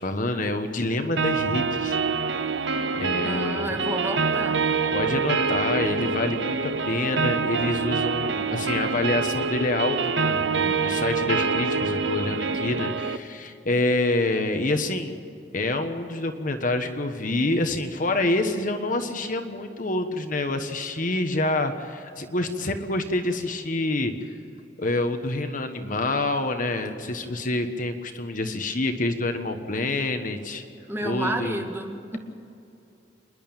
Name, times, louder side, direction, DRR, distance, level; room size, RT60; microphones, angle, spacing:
voice 1, 0.0-2.0 2.9-3.7 4.9-15.2 15.5-24.1 24.8-30.6 31.0-31.6, left 2 dB, 50° left, 7 dB, 1.3 m, -27 dB
sound 1, 1.2-13.2, right 4 dB, 85° right, 0.9 m, -26 dB
voice 2, 3.2-4.6 30.9-32.2, right 1 dB, 15° right, 3 dB, 1.8 m, -31 dB
27.0 x 11.0 x 8.9 m, 2.6 s
head